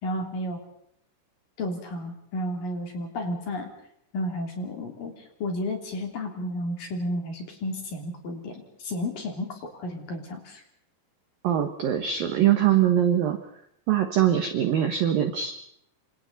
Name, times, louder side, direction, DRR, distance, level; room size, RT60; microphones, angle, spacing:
voice 1, 0.0-0.6 1.6-3.7 4.1-10.6, left 1 dB, 45° left, 2 dB, 4.3 m, -32 dB
voice 2, 11.4-13.4 13.9-15.5, right 10 dB, 70° right, 7 dB, 2.2 m, -22 dB
29.0 x 26.0 x 4.1 m, 0.74 s
omnidirectional pair, 5.9 m